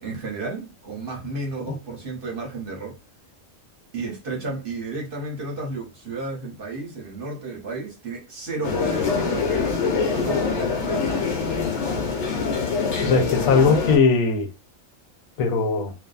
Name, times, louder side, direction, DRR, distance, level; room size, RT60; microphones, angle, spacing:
voice 1, 0.0-3.0 3.9-9.7 10.1-11.3, right 3 dB, 50° right, 0.8 m, -33 dB
sound 1, 8.6-14.0, left 5 dB, 65° left, 1.1 m, -24 dB
voice 2, 13.0-14.5 15.4-15.9, left 4 dB, 85° left, 1.0 m, -19 dB
2.5 x 2.3 x 2.3 m
omnidirectional pair, 1.4 m